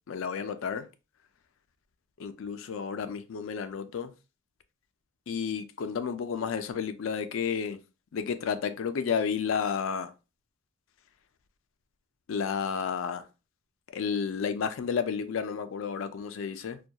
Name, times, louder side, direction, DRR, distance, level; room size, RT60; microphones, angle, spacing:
voice 1, 0.1-0.9 2.2-4.1 5.3-7.8 8.1-10.1 12.3-13.3 13.9-16.8, left 6 dB, 75° left, 0.4 m, -31 dB
2.2 x 2.2 x 2.7 m
head